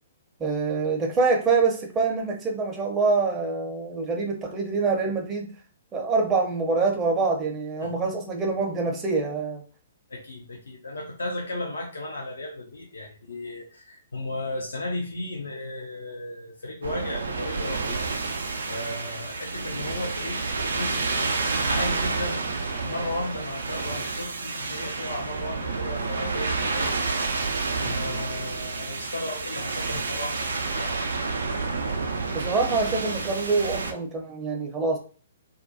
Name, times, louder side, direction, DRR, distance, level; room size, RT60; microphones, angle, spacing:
voice 1, 0.4-5.5 5.9-9.6 32.3-35.0, right 4 dB, 20° right, 2 dB, 0.6 m, -25 dB
voice 2, 10.1-18.1 18.6-22.4 22.8-27.2 27.7-31.0, left 1 dB, 70° left, -1 dB, 0.4 m, -35 dB
sound 1, 16.8-33.9, right 3 dB, 65° right, 0.3 m, -29 dB
2.3 x 2.1 x 2.6 m, 0.38 s
figure-of-eight pair, 120°, 0 cm